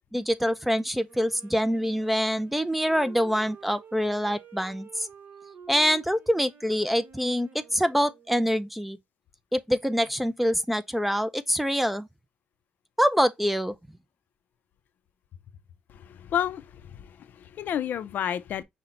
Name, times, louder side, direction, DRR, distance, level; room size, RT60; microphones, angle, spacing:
voice 1, 0.1-5.1 5.7-9.0 9.5-12.1 13.0-13.7, equal, 5° right, 0.3 m, -25 dB
Wind instrument woodwind instrument, 1.0-8.8, right 6 dB, 65° right, 1.0 m, -50 dB
voice 2, 15.9-18.6, left 9 dB, 65° left, 0.4 m, -31 dB
5.8 x 2.1 x 3.7 m
cardioid pair, 125°, 3 cm